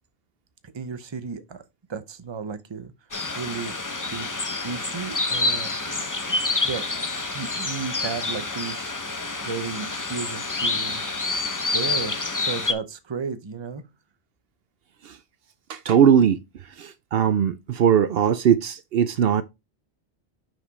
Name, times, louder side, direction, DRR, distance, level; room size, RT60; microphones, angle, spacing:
voice 1, 0.6-1.6 1.9-2.9 3.4-3.7 4.1-5.9 6.3-6.8 7.3-11.0 11.7-13.8, right 5 dB, 30° right, 0.7 m, -34 dB
sound 1, 3.1-12.7, left 3 dB, 20° left, 0.6 m, -28 dB
voice 2, 15.7-16.4 16.8-19.4, right 8 dB, 70° right, 0.8 m, -20 dB
6.1 x 4.9 x 4.0 m
omnidirectional pair, 1.1 m